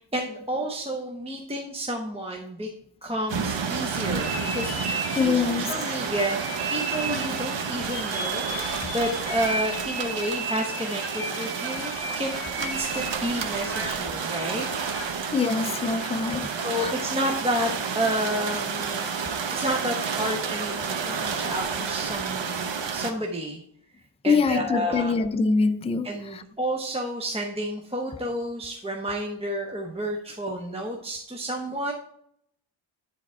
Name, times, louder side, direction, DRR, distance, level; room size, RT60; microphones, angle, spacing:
voice 1, 0.0-2.7 3.0-8.5 8.8-14.7 16.5-19.1 19.5-23.6 24.2-25.1 26.0-31.9, equal, 10° right, 0.7 m, -30 dB
sound 1, 3.3-23.1, right 6 dB, 60° right, 0.9 m, -30 dB
sound 2, 4.1-15.3, right 2 dB, 30° right, 2.6 m, -35 dB
voice 2, 5.1-6.0 8.8-8.9 15.3-16.9 24.2-26.4, left 4 dB, 15° left, 0.3 m, -25 dB
9.8 x 3.6 x 4.3 m
wide cardioid pair, 125°, 50 cm